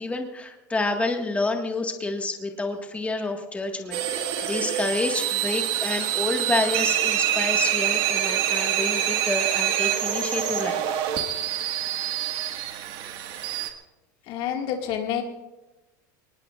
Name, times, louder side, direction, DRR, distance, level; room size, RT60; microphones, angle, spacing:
voice 1, 0.0-11.0, left 2 dB, 15° left, 3 dB, 1.8 m, -29 dB
sound 1, 3.9-13.7, right 10 dB, 60° right, 1.9 m, -26 dB
voice 2, 14.3-15.2, left 9 dB, 60° left, 3 dB, 2.2 m, -28 dB
22.0 x 19.5 x 2.5 m, 1.1 s
supercardioid pair, 105°, 10 cm